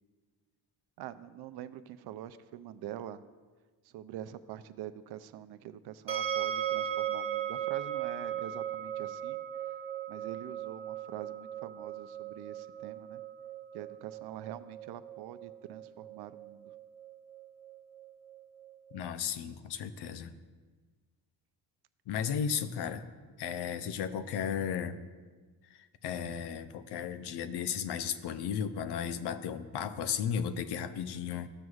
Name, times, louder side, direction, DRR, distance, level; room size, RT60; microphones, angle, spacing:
voice 1, 1.0-3.2 3.8-9.4 10.1-13.2 13.7-16.7, right 11 dB, 75° right, 13 dB, 0.5 m, -45 dB
sound 1, 6.1-19.1, right 10 dB, 35° right, 1.0 m, -38 dB
voice 2, 18.9-20.3 22.1-23.1 23.4-25.0 25.7-31.5, left 8 dB, 80° left, 11 dB, 0.6 m, -35 dB
13.5 x 6.2 x 2.4 m, 1.4 s
cardioid pair, 95°, 40 cm